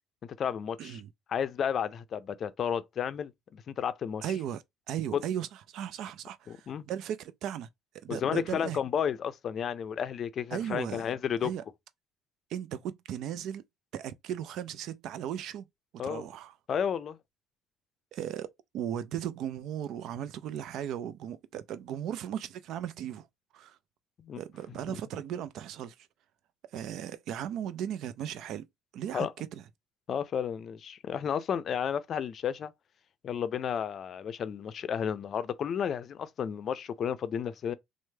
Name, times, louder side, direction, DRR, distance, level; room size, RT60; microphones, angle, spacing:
voice 1, 0.2-1.0 1.3-4.2 5.1-5.2 6.5-6.9 8.1-11.5 16.0-16.3 16.7-17.2 24.2-24.4 24.9-25.0 29.1-29.3 30.1-32.7 33.2-37.7, left 8 dB, 50° left, 0.4 m, -32 dB
voice 2, 0.8-1.1 4.2-7.7 7.9-8.8 10.5-11.1 11.4-11.6 12.5-13.6 13.9-15.7 16.0-16.5 18.1-18.5 18.7-23.3 23.5-23.8 24.4-26.1 26.7-28.7 28.9-29.6, right 10 dB, 70° right, 0.4 m, -36 dB
3.1 x 2.1 x 3.3 m
supercardioid pair, 85°, 0 cm